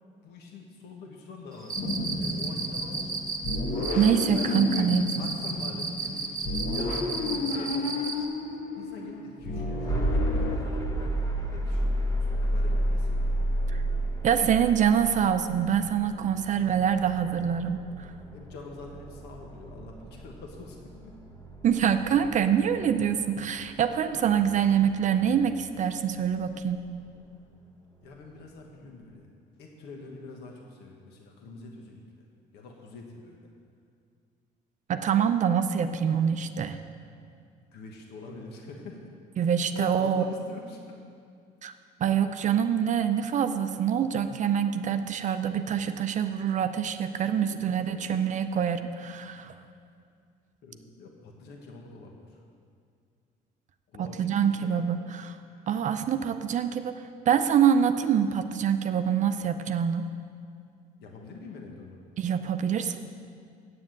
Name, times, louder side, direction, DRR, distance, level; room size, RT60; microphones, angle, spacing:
voice 1, 0.2-3.2 4.3-6.4 6.7-8.0 8.7-13.2 16.5-16.7 17.9-18.0 18.3-21.1 24.1-24.4 28.0-29.3 29.6-32.0 32.5-33.5 37.7-39.1 39.7-40.9 45.2-45.3 47.5-48.4 50.6-52.4 53.9-54.9 55.5-55.7 61.0-62.0, left 3 dB, 80° left, 1 dB, 1.3 m, -45 dB
Cricket, 1.6-8.2, right 4 dB, 20° right, 1.2 m, -33 dB
sound 1, 1.7-10.6, left 2 dB, 45° left, 1.2 m, -32 dB
voice 2, 3.9-5.1 13.7-13.8 14.2-18.1 21.6-26.9 34.9-36.8 39.4-40.3 41.6-41.7 42.0-49.5 54.0-55.3 55.7-57.0 57.3-60.1 62.2-63.0, right 8 dB, 45° right, 9 dB, 0.5 m, -25 dB
sound 2, 9.9-25.8, right 1 dB, 20° left, 1.2 m, -31 dB
8.4 x 7.4 x 7.7 m, 2.3 s
cardioid pair, 110°, 17 cm